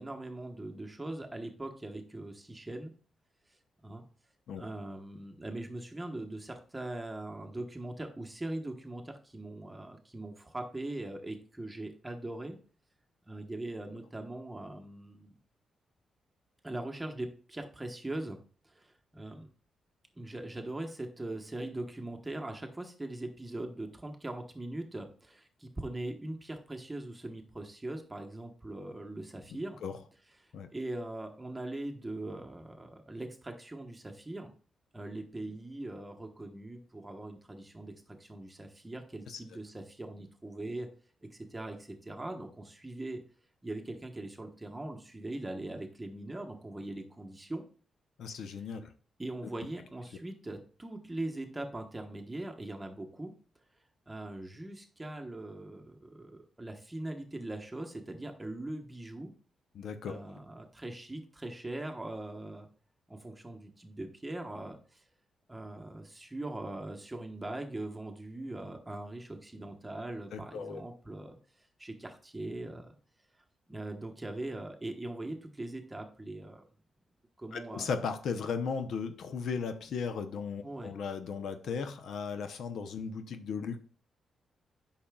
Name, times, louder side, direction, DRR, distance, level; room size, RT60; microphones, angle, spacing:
voice 1, 0.0-2.9 3.8-4.0 4.5-12.6 13.3-15.4 16.6-18.4 18.6-19.5 20.2-29.8 30.7-34.5 34.9-40.9 41.3-43.2 43.6-47.6 49.2-53.3 54.1-59.3 60.1-62.7 63.1-65.0 65.5-71.4 71.8-72.9 73.7-76.6 77.4-77.9 80.6-80.9, right 1 dB, 15° right, 3 dB, 1.1 m, -41 dB
voice 2, 48.2-48.9 59.7-60.2 70.3-70.8 77.5-83.8, left 5 dB, 75° left, 9 dB, 0.7 m, -36 dB
8.6 x 5.7 x 2.3 m, 0.42 s
cardioid pair, 100°, 0 cm